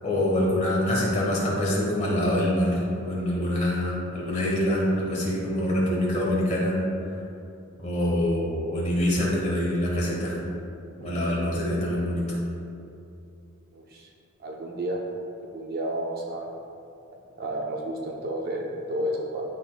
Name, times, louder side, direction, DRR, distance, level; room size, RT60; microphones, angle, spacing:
voice 1, 0.0-7.1 7.8-10.4 11.0-12.2, left 1 dB, 30° left, -5 dB, 1.5 m, -25 dB
voice 2, 13.7-14.1 14.4-15.0 15.3-16.5 17.4-19.4, right 1 dB, 40° right, -1 dB, 0.6 m, -31 dB
11.5 x 4.0 x 2.2 m, 2.7 s
head